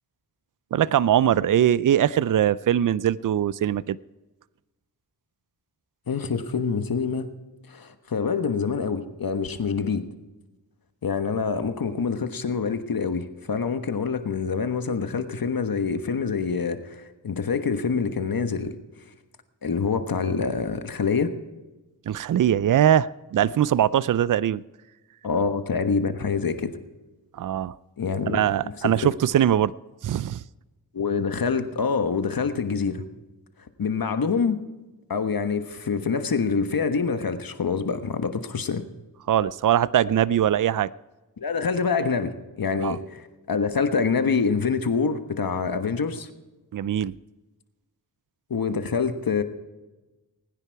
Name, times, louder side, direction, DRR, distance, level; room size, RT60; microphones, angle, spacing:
voice 1, 0.7-4.0 22.1-24.6 27.4-27.7 28.3-29.7 30.0-30.4 39.3-40.9 42.8-43.0 46.7-47.2, right 10 dB, 55° right, 0.5 m, -21 dB
voice 2, 6.1-7.3 7.7-10.0 11.0-18.8 19.6-21.3 25.2-26.7 28.0-29.0 30.9-33.0 33.8-34.6 35.1-38.8 41.4-46.3 48.5-49.4, left 5 dB, 65° left, 1.3 m, -26 dB
20.0 x 10.0 x 4.6 m
cardioid pair, 50°, 37 cm